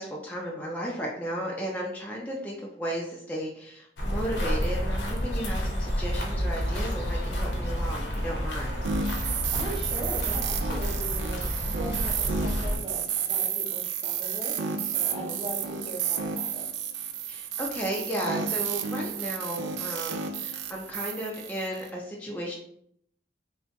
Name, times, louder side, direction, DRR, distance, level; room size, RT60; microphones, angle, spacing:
voice 1, 0.0-8.7 15.1-15.4 17.2-22.5, equal, 10° left, -3 dB, 0.3 m, -34 dB
sound 1, 4.0-12.8, equal, 85° left, 0.7 m, -30 dB
sound 2, 8.8-21.9, right 7 dB, 90° right, 0.3 m, -31 dB
voice 2, 9.5-16.6, right 1 dB, 30° right, -1 dB, 0.6 m, -39 dB
2.8 x 2.1 x 2.8 m, 0.69 s
head